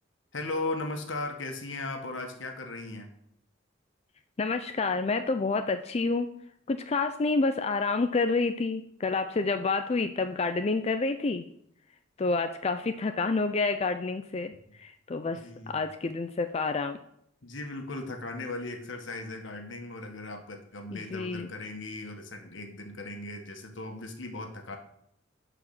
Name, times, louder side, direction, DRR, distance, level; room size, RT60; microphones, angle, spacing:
voice 1, 0.3-3.1 15.3-15.8 17.4-24.8, left 2 dB, 80° left, 4 dB, 1.6 m, -37 dB
voice 2, 4.4-6.3 6.7-11.5 12.2-14.5 14.8-15.4 15.7-17.0 20.9-21.5, left 3 dB, 35° left, 7 dB, 0.4 m, -28 dB
11.5 x 5.0 x 6.0 m, 0.72 s
head